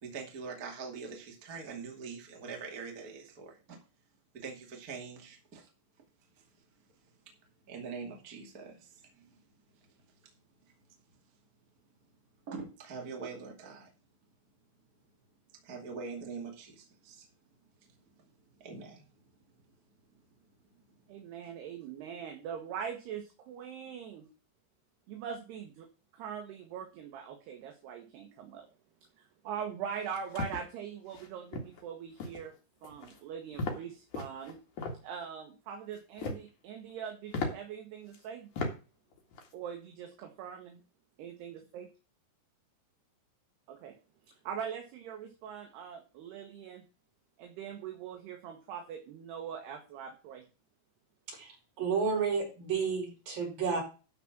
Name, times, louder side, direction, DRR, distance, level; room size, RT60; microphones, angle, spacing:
voice 1, 0.0-3.8 4.3-5.7 6.4-6.5 7.3-7.4 7.7-9.4 12.5-13.9 15.5-17.3 17.8-19.1, right 5 dB, 30° right, 1 dB, 1.9 m, -44 dB
voice 2, 21.1-24.3 25.1-28.7 29.2-32.6 32.8-34.6 35.0-38.5 39.5-40.7 41.2-41.9 43.7-44.0 44.3-46.9 47.4-50.4, right 7 dB, 70° right, 4 dB, 3.1 m, -42 dB
sound 1, 30.0-30.6 31.1-31.3 31.5-31.8 32.2-32.5 32.8-33.2 33.6-33.8 34.1-35.0 35.9-36.5 36.9-37.0 37.3-37.5 38.1-38.2 38.6-38.7 39.1-39.5, left 3 dB, 50° left, 2.9 m, -36 dB
voice 3, 51.3-53.8, right 5 dB, 50° right, -1 dB, 6.4 m, -31 dB
12.5 x 5.1 x 6.0 m, 0.33 s
omnidirectional pair, 5.2 m